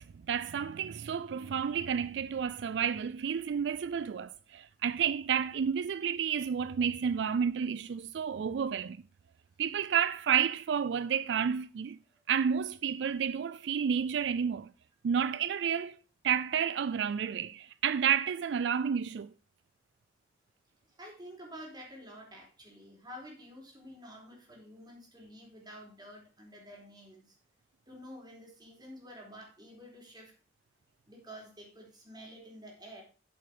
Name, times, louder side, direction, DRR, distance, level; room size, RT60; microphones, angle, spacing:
voice 1, 0.0-9.0 9.6-12.0 12.3-14.7 15.0-16.0 16.2-19.3, right 7 dB, 75° right, 0.4 m, -31 dB
voice 2, 20.9-27.4 27.9-30.4 31.1-33.0, equal, 25° right, 4.1 m, -49 dB
8.4 x 7.7 x 5.1 m
head